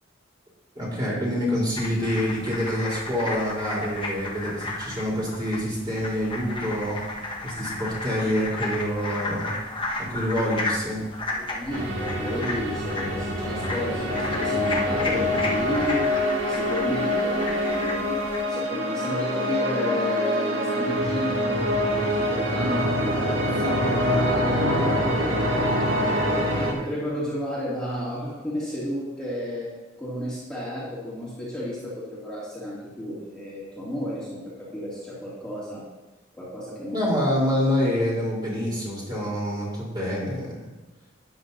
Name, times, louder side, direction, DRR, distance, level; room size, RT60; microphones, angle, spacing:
voice 1, 0.8-7.0 7.4-9.5 10.0-11.0 36.9-40.7, equal, 25° right, -6 dB, 4.0 m, -26 dB
sound 1, 1.8-18.4, left 2 dB, 25° left, 1.5 m, -34 dB
voice 2, 11.3-16.1 16.4-18.1 18.5-25.5 26.2-29.7 30.0-35.9 36.3-37.1, equal, 5° left, -10 dB, 2.7 m, -32 dB
sound 2, 11.7-26.7, equal, 85° right, 2.1 m, -25 dB
13.0 x 9.9 x 2.8 m, 1.1 s
head